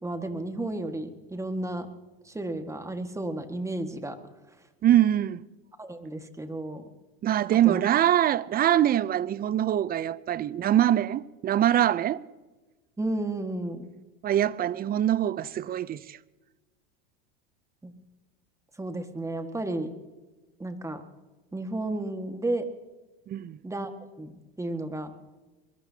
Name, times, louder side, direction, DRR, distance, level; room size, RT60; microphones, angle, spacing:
voice 1, 0.0-1.9 2.2-4.2 5.8-6.8 7.6-7.8 13.0-13.9 17.8-17.9 18.8-19.9 20.6-21.1 21.5-22.7 23.6-23.9 24.2-24.3 24.6-25.1, right 2 dB, 10° right, 1.7 m, -32 dB
voice 2, 4.8-5.4 7.2-12.2 14.2-16.2 23.3-23.6, right 11 dB, 30° right, 0.6 m, -23 dB
23.0 x 21.5 x 2.9 m
hypercardioid pair, 100°, 30 cm